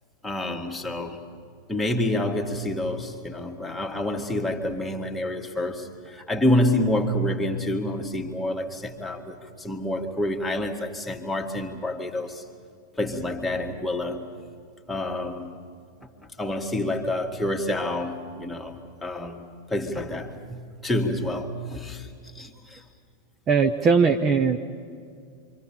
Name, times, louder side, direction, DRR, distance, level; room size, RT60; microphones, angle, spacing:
voice 1, 0.2-1.2 1.7-12.4 13.0-14.3 14.9-15.5 16.4-22.8, left 1 dB, 5° left, 0 dB, 2.0 m, -28 dB
voice 2, 23.5-24.6, right 5 dB, 30° right, 6 dB, 0.9 m, -20 dB
28.0 x 25.0 x 5.7 m, 2.3 s
figure-of-eight pair, 90°, 0 cm